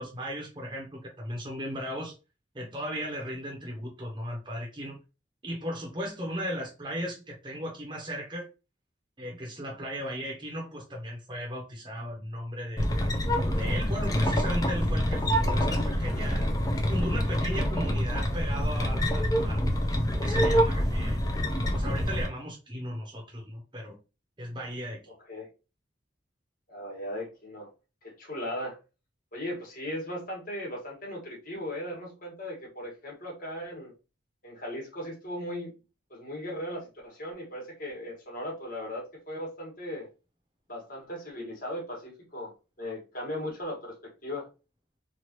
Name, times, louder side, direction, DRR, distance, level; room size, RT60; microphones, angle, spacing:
voice 1, 0.0-2.1 2.5-5.0 5.4-8.5 9.2-12.9 13.6-16.5 16.9-19.8 20.2-21.2 21.7-24.0 24.4-25.0, equal, 25° right, 0.7 m, -36 dB
sound 1, 12.8-22.3, equal, 20° left, 0.4 m, -26 dB
voice 2, 25.1-25.5 26.7-27.7 28.0-28.8 29.3-33.9 34.4-35.7 36.1-40.1 40.7-44.5, left 1 dB, 45° left, 1.3 m, -37 dB
3.1 x 2.3 x 2.9 m
head